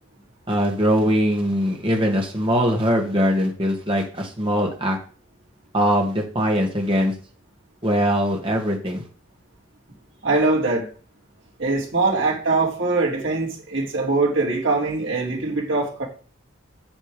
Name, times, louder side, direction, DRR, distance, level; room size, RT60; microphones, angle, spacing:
voice 1, 0.5-5.0 5.7-7.1 7.8-9.0, equal, 25° right, 2.1 m, -21 dB
voice 2, 10.2-10.9 11.6-16.1, right 3 dB, 65° right, 3.5 m, -22 dB
8.9 x 7.4 x 5.1 m
head